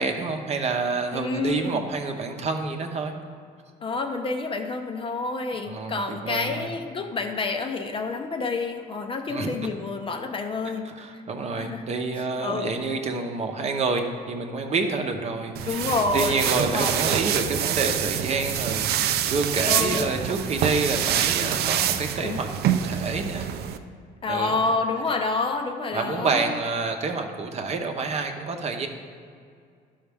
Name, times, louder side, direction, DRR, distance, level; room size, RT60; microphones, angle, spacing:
voice 1, 0.0-3.1 5.6-6.7 9.3-9.6 10.8-23.5 24.3-24.5 25.9-28.9, right 4 dB, 40° right, 4 dB, 0.8 m, -28 dB
voice 2, 1.1-1.8 3.8-10.9 11.6-11.9 12.4-12.7 15.6-17.0 19.6-20.1 22.2-22.4 24.2-26.5, left 3 dB, 30° left, 5 dB, 0.7 m, -28 dB
sound 1, 15.6-23.8, right 10 dB, 70° right, 0.5 m, -26 dB
11.5 x 5.5 x 3.5 m, 2.2 s
cardioid pair, 110°, 17 cm